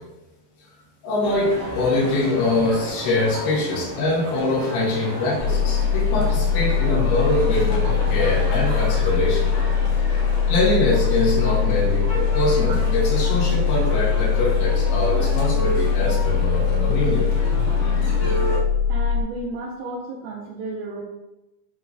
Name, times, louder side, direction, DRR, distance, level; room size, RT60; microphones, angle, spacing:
voice 1, 1.0-9.5 10.5-17.3, left 2 dB, 75° left, -4 dB, 4.1 m, -23 dB
Male speech man speaking, 1.2-18.6, equal, 60° left, 2.2 m, -32 dB
sound 1, 5.4-19.2, left 7 dB, 40° right, 1.3 m, -21 dB
voice 2, 8.7-9.1 11.4-11.6 12.0-12.1 12.7-12.8 18.9-21.0, right 2 dB, 80° right, -4 dB, 3.6 m, -34 dB
13.0 x 4.5 x 3.2 m, 0.98 s
omnidirectional pair, 5.9 m